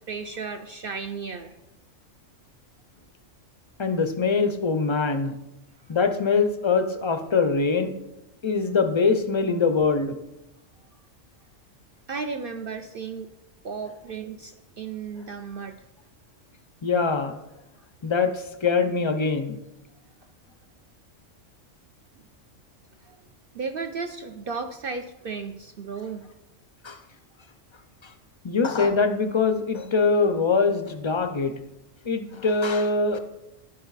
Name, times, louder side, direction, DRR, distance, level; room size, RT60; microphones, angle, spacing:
voice 1, 0.1-1.5 5.8-6.0 12.1-13.3 13.6-15.8 23.0-23.3 23.5-26.3, right 5 dB, 60° right, 6 dB, 0.6 m, -34 dB
voice 2, 3.8-5.3 5.9-7.9 8.4-10.2 16.8-17.3 18.0-19.6 26.8-27.0 28.0-28.1 28.4-31.5 32.1-33.2, left 4 dB, 45° left, 8 dB, 0.3 m, -23 dB
10.5 x 6.8 x 4.0 m, 0.94 s
omnidirectional pair, 1.3 m